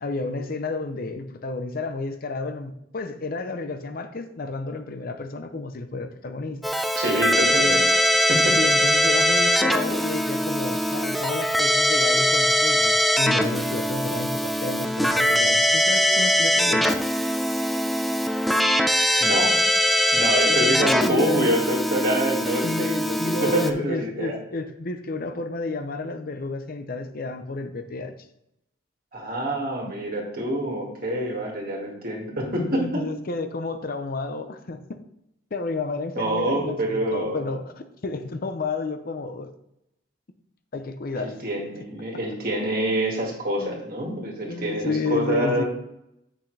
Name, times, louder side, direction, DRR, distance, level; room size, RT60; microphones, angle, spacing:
voice 1, 0.0-6.6 7.5-7.8 8.5-17.1 18.3-18.5 20.5-21.5 22.6-22.9 23.2-28.1 32.5-35.0 35.5-39.5 40.7-41.4 43.6-43.8 44.4-45.6, left 3 dB, 50° left, 0.6 m, -31 dB
Keyboard (musical), 6.6-23.7, equal, ahead, 0.4 m, -22 dB
voice 2, 6.9-8.0 8.3-8.6 19.2-19.6 20.1-24.4 29.1-33.0 36.2-37.5 41.2-45.6, right 1 dB, 50° right, 2.1 m, -26 dB
8.4 x 6.1 x 3.3 m
head